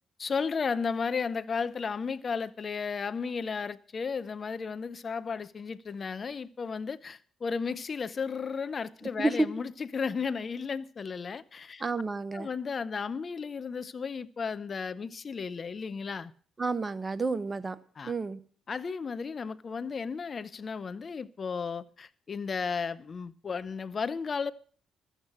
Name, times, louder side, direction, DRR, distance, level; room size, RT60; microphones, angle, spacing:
voice 1, 0.2-11.8 12.3-16.3 18.0-18.1 18.7-24.5, left 5 dB, 45° left, 0.6 m, -34 dB
voice 2, 11.8-12.5 16.6-17.8 18.0-18.4, right 3 dB, 30° right, 1.1 m, -30 dB
13.5 x 8.1 x 7.3 m
hypercardioid pair, 45°, 0 cm